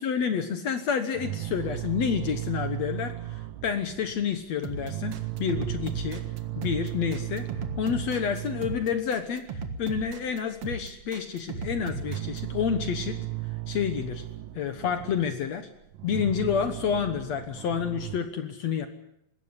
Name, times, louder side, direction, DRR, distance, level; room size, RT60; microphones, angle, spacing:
voice 1, 0.0-6.2 6.6-7.5 7.8-9.5 9.8-13.2 13.7-14.2 14.6-15.7 16.0-18.9, left 7 dB, 60° left, 9 dB, 2.0 m, -29 dB
sound 1, 1.2-4.3 4.7-9.3 9.6-10.7 10.9-11.1 11.4-15.5 15.9-18.2, right 15 dB, 70° right, 2.0 m, -36 dB
sound 2, 4.6-12.4, right 4 dB, 50° right, 2.2 m, -37 dB
20.0 x 17.0 x 9.9 m, 0.82 s
omnidirectional pair, 4.2 m